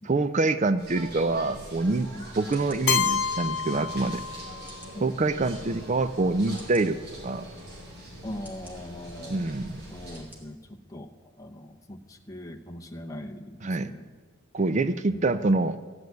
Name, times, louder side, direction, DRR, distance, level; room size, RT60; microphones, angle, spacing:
voice 1, 0.0-2.1 2.4-4.2 5.0-7.0 7.2-7.5 9.3-9.8 13.6-13.9 14.5-15.8, right 3 dB, 35° right, 13 dB, 0.4 m, -25 dB
sound 1, 0.8-10.2, right 1 dB, 50° right, 5.2 m, -43 dB
sound 2, 1.8-1.9 2.5-2.8 3.6-3.7 4.7-5.0 5.7-5.8 6.6-6.9 7.7-7.8 8.4-8.8 9.5-9.6 10.1-10.4 10.8-10.9, equal, 10° right, 2.0 m, -51 dB
Keyboard (musical), 2.9-4.8, left 8 dB, 60° left, 0.5 m, -28 dB
voice 2, 8.2-9.5 9.9-11.1 11.4-14.1 15.1-15.3, left 1 dB, 15° left, 2 dB, 0.8 m, -41 dB
14.5 x 8.0 x 9.4 m, 1.5 s
head